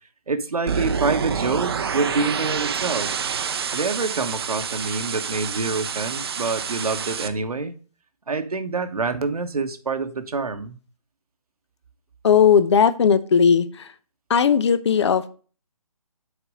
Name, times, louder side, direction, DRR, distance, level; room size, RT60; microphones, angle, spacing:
voice 1, 0.3-3.1 3.7-7.7 8.3-10.8, right 4 dB, 80° right, 1.2 m, -26 dB
sound 1, 0.7-7.3, right 6 dB, 45° right, 0.7 m, -28 dB
voice 2, 12.2-13.7 14.3-15.3, left 7 dB, 50° left, 0.7 m, -17 dB
6.7 x 4.3 x 5.0 m
hypercardioid pair, 155°, 19 cm